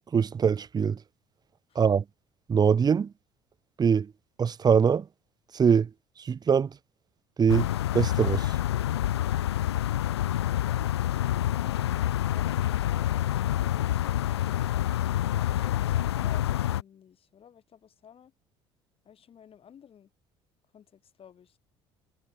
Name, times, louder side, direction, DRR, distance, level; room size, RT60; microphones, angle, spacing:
voice 1, 0.1-1.0 1.8-2.0 2.5-3.1 3.8-4.1 4.4-5.0 5.5-5.9 6.2-6.7 7.4-7.7 7.9-8.5, right 6 dB, 30° right, 0.8 m, -22 dB
sound 1, 7.5-16.8, left 12 dB, 85° left, 0.5 m, -27 dB
voice 2, 15.4-18.3 19.0-20.1 20.7-21.6, left 8 dB, 45° left, 6.7 m, -53 dB
hypercardioid pair, 65°, 13 cm